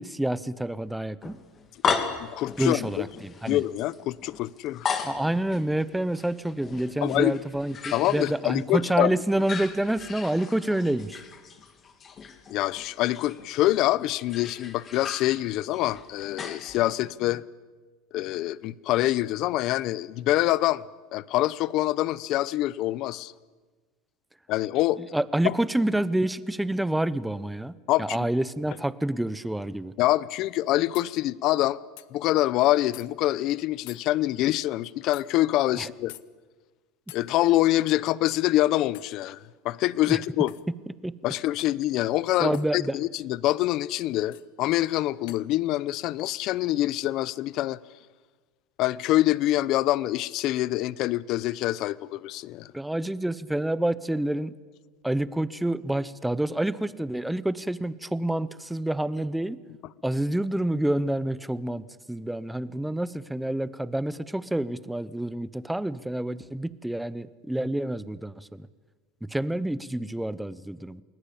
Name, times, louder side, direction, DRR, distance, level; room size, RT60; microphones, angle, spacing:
voice 1, 0.0-1.4 2.6-3.6 5.0-11.2 25.0-29.9 35.7-35.9 40.1-40.2 41.0-41.2 42.4-43.0 52.7-54.5 55.0-59.6 60.0-68.7 69.2-71.0, right 1 dB, 5° right, 0.8 m, -28 dB
sound 1, 1.2-8.8 9.1-17.1, left 6 dB, 25° left, 2.3 m, -36 dB
voice 2, 2.2-3.1 3.5-4.9 7.0-7.4 7.9-9.1 12.5-17.4 18.1-20.8 21.1-23.3 24.5-25.0 25.4-25.5 27.9-28.2 30.0-31.8 32.1-36.1 37.1-39.4 39.6-40.5 41.2-47.8 48.8-52.7, left 15 dB, 45° left, 0.8 m, -25 dB
sound 2, 30.9-31.1 32.0-32.1 32.9-33.1 33.9-34.1 35.1-35.3 36.1-36.3 37.1-37.3 38.9-39.2 40.5-40.7 41.6-41.8 42.5-42.7 44.3-44.5 45.3-45.5, left 20 dB, 70° left, 1.0 m, -46 dB
29.5 x 20.5 x 8.6 m
supercardioid pair, 155°, 0 cm